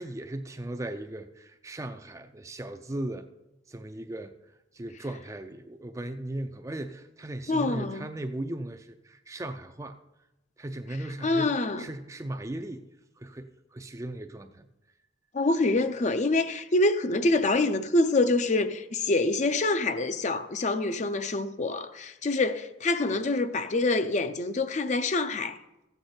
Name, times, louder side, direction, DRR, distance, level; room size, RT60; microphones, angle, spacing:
voice 1, 0.0-3.3 3.7-4.4 4.7-10.0 10.6-12.9 13.2-14.7, right 1 dB, 15° right, 0.4 m, -37 dB
voice 2, 7.5-8.1 11.2-11.8 15.3-25.6, left 2 dB, 40° left, 0.5 m, -26 dB
14.0 x 8.0 x 4.3 m
head